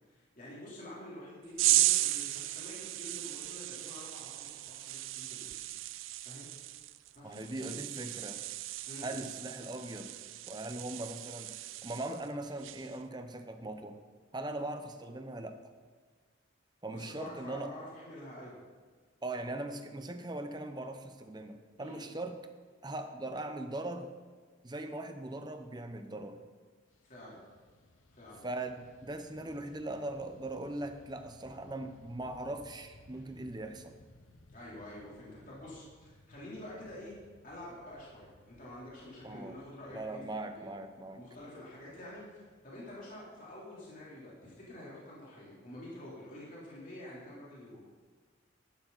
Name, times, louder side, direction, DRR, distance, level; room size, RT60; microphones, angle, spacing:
voice 1, 0.1-5.7 6.2-6.5 7.1-7.7 8.9-9.1 16.9-18.6 21.8-22.0 27.0-27.4 28.1-28.4 34.5-37.1 37.4-40.7 41.1-47.8, left 1 dB, 40° left, -7 dB, 3.6 m, -48 dB
sound 1, 1.6-12.3 12.6-13.0, right 15 dB, 80° right, 0.5 m, -35 dB
voice 2, 7.2-8.4 9.0-10.1 10.5-11.5 11.8-14.0 14.3-15.6 16.8-17.7 19.2-22.4 22.8-24.1 24.6-26.4 28.4-34.0 39.2-39.6 39.9-41.2, right 2 dB, 20° right, 7 dB, 0.8 m, -40 dB
Fixed-wing aircraft airplane, 26.9-44.3, left 2 dB, 85° left, 1.0 m, -61 dB
13.5 x 12.0 x 4.1 m, 1.5 s
head